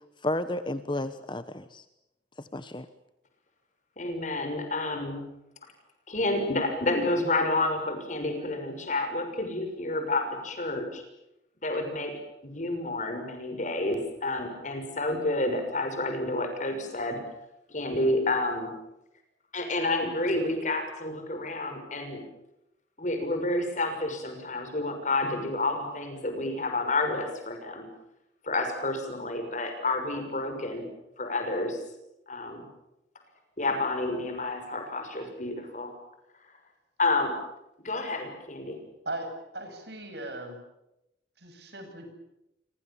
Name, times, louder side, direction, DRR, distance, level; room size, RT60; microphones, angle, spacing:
voice 1, 0.2-1.8 2.4-2.9, left 1 dB, 25° left, 11 dB, 1.1 m, -32 dB
voice 2, 4.0-5.2 6.1-11.0 11.6-17.2 17.7-18.7 19.5-22.2 23.0-27.9 28.4-30.9 31.2-31.8 32.3-32.7 33.6-35.9 37.0-37.4 37.8-38.8, left 2 dB, 40° left, 6 dB, 6.5 m, -29 dB
voice 3, 39.0-40.6 41.4-42.1, right 2 dB, 65° right, 6 dB, 7.7 m, -38 dB
28.5 x 25.0 x 7.4 m, 0.88 s
head